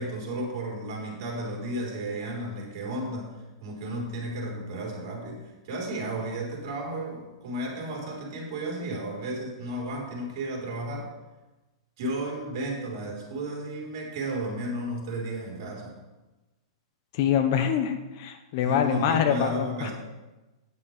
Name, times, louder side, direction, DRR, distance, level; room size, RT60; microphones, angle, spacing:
voice 1, 0.0-3.3 3.6-11.1 12.0-15.9 18.6-19.9, right 1 dB, 45° right, -1 dB, 4.2 m, -33 dB
voice 2, 17.1-19.9, left 9 dB, 40° left, 8 dB, 0.9 m, -25 dB
9.8 x 7.5 x 6.6 m, 1.1 s
supercardioid pair, 170°, 3 cm